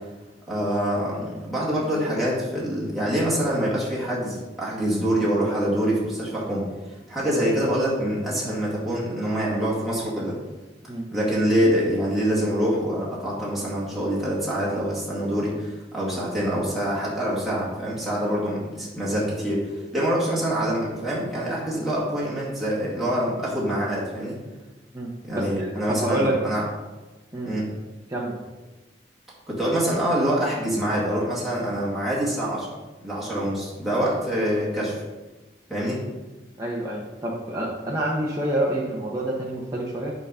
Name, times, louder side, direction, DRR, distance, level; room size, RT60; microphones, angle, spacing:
voice 1, 0.5-10.4 11.1-24.4 25.3-26.6 27.5-27.7 29.5-32.7 33.0-35.0 35.7-36.0, equal, ahead, -8 dB, 2.1 m, -25 dB
voice 2, 24.9-26.4 27.3-27.5 28.1-28.3 36.6-40.1, right 1 dB, 20° right, -4 dB, 1.0 m, -27 dB
9.1 x 4.0 x 5.6 m, 1.2 s
head